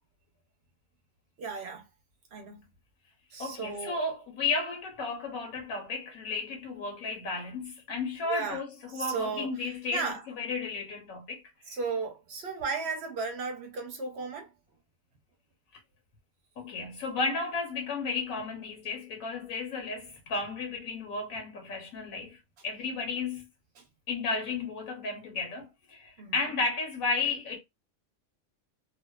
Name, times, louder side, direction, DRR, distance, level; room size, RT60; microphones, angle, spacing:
voice 1, 1.4-1.9 2.3-2.7 3.3-4.0 8.2-8.6 8.9-10.2 11.7-14.5 23.8-23.9 26.2-26.4, right 4 dB, 55° right, 0.9 m, -35 dB
voice 2, 3.4-11.4 11.7-11.8 16.6-23.5 24.1-27.6, left 4 dB, 80° left, 1.2 m, -33 dB
2.8 x 2.0 x 2.2 m
omnidirectional pair, 1.4 m